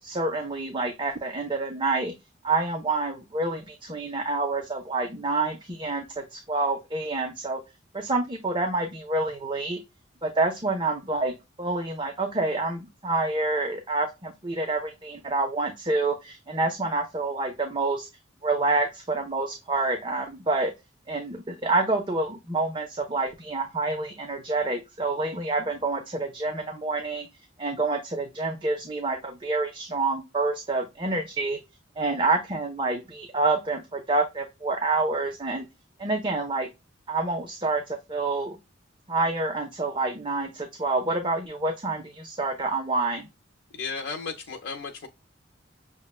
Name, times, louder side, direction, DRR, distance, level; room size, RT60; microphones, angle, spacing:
voice 1, 0.0-2.1 2.4-7.6 7.9-9.8 10.2-18.1 18.4-20.7 21.1-27.3 27.6-31.6 32.0-35.7 36.0-36.7 37.1-38.6 39.1-43.3, right 3 dB, 25° right, 0.6 m, -27 dB
voice 2, 43.7-45.1, left 4 dB, 85° left, 0.6 m, -34 dB
6.3 x 2.2 x 2.3 m
head